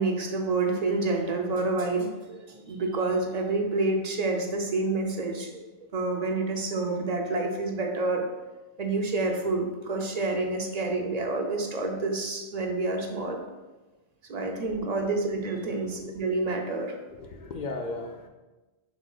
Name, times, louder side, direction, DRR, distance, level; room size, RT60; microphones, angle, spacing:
voice 1, 0.0-5.6 5.9-8.2 8.8-13.4 14.3-17.0, right 3 dB, 50° right, 2 dB, 0.5 m, -28 dB
voice 2, 17.1-18.3, left 3 dB, 55° left, 3 dB, 0.5 m, -36 dB
6.0 x 3.6 x 2.3 m, 1.2 s
omnidirectional pair, 1.1 m